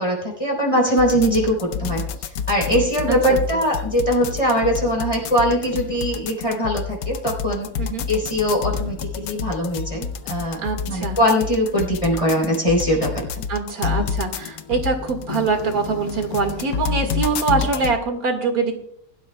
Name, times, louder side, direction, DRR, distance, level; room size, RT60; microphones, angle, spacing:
voice 1, 0.0-2.0 2.5-7.7 8.1-13.4, equal, 20° left, -2 dB, 3.7 m, -21 dB
sound 1, 1.0-18.0, left 7 dB, 80° left, 1.2 m, -29 dB
voice 2, 3.1-3.4 7.8-8.1 10.6-11.2 13.5-18.7, right 4 dB, 80° right, 4 dB, 2.3 m, -23 dB
21.0 x 12.0 x 2.2 m, 0.71 s
omnidirectional pair, 1.5 m